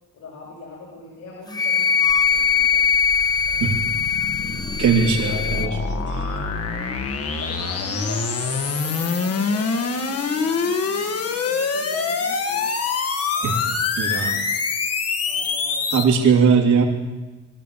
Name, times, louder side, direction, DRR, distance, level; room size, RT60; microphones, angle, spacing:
voice 1, 0.1-2.8 3.5-4.0 4.4-4.8 7.4-12.7 13.3-14.0 15.2-15.9, left 2 dB, 75° left, -5 dB, 6.6 m, -42 dB
Wind instrument woodwind instrument, 1.5-5.7, left 6 dB, 15° left, 1.5 m, -21 dB
sound 1, 2.1-16.0, left 4 dB, 50° left, 2.3 m, -25 dB
voice 2, 4.8-5.8 6.1-6.4 13.4-13.7 14.0-14.4 15.9-16.8, right 6 dB, 75° right, 1 dB, 3.4 m, -19 dB
23.5 x 13.0 x 8.6 m, 1.2 s
cardioid pair, 90°, 30 cm